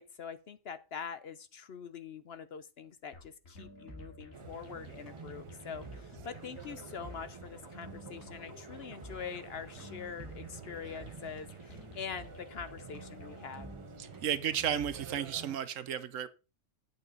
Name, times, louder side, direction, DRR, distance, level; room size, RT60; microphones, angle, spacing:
voice 1, 0.0-13.7, left 6 dB, 55° left, 0.8 m, -44 dB
sound 1, 3.1-13.4, left 2 dB, 75° left, 2.3 m, -54 dB
sound 2, 3.6-15.2, right 1 dB, 15° right, 1.1 m, -52 dB
sound 3, 4.3-15.6, right 5 dB, 45° right, 0.4 m, -50 dB
voice 2, 14.0-16.3, right 9 dB, 70° right, 1.1 m, -33 dB
8.6 x 8.3 x 3.9 m
omnidirectional pair, 1.4 m